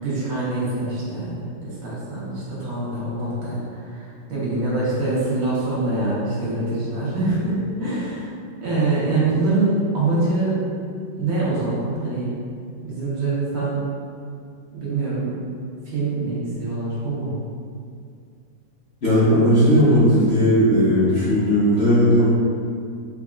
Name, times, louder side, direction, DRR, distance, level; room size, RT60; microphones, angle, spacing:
voice 1, 0.0-1.3 1.6-8.2 8.6-10.6 11.2-12.3 12.8-13.8 14.7-15.3 15.9-17.3, right 2 dB, 85° right, -8 dB, 2.0 m, -24 dB
voice 2, 19.0-22.2, equal, 45° left, -12 dB, 0.8 m, -16 dB
4.8 x 3.6 x 2.4 m, 2.3 s
omnidirectional pair, 2.1 m